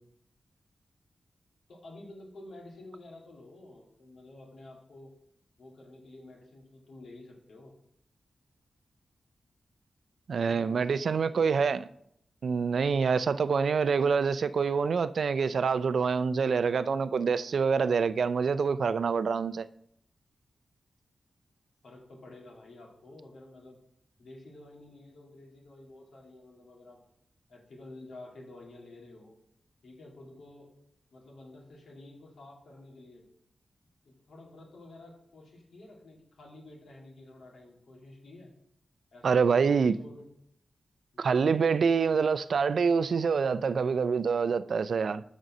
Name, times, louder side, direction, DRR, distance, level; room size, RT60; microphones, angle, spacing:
voice 1, 1.7-5.1 5.6-7.7 10.5-11.8 21.8-23.8 24.2-27.0 27.5-29.4 29.8-30.7 31.1-33.2 34.0-38.5 39.1-40.3 41.1-41.4, left 2 dB, 80° left, 2.3 m, -50 dB
voice 2, 10.3-11.8 12.4-19.7 39.2-39.9 41.2-45.2, right 5 dB, 65° right, 0.4 m, -26 dB
6.5 x 5.3 x 6.1 m
wide cardioid pair, 120°, 0 cm